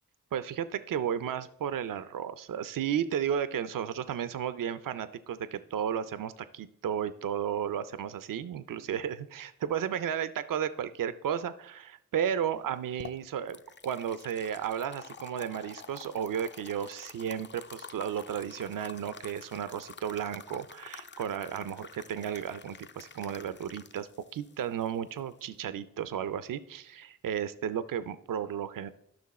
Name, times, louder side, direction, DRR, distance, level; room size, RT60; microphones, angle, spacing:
voice 1, 0.3-13.6 13.8-28.9, right 9 dB, 85° right, 14 dB, 0.5 m, -33 dB
sound 1, 12.6-25.6, left 5 dB, 35° left, 0.5 m, -49 dB
12.0 x 6.0 x 4.1 m, 0.78 s
cardioid pair, 65°, 32 cm